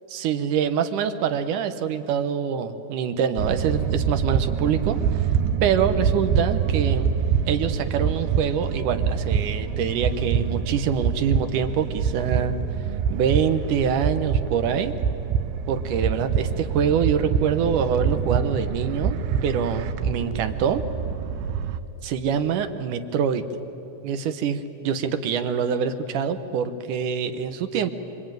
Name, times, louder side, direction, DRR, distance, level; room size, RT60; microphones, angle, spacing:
voice 1, 0.1-5.0 5.6-7.1 7.5-12.6 13.1-14.9 15.7-20.8 22.0-23.4 24.0-27.9, right 7 dB, 70° right, 9 dB, 2.2 m, -25 dB
sound 1, 3.4-21.8, right 7 dB, 90° right, 2.8 m, -25 dB
26.5 x 25.0 x 9.1 m, 2.8 s
omnidirectional pair, 4.4 m